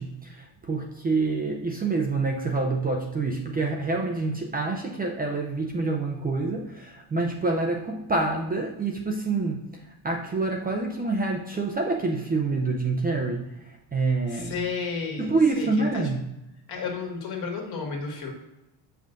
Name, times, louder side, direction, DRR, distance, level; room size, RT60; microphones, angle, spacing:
voice 1, 0.0-14.6 15.2-16.2, right 3 dB, 20° right, 1 dB, 0.5 m, -27 dB
voice 2, 14.3-15.9 16.7-18.3, left 5 dB, 50° left, 1 dB, 1.8 m, -32 dB
7.6 x 5.6 x 2.5 m, 0.92 s
cardioid pair, 135°, 47 cm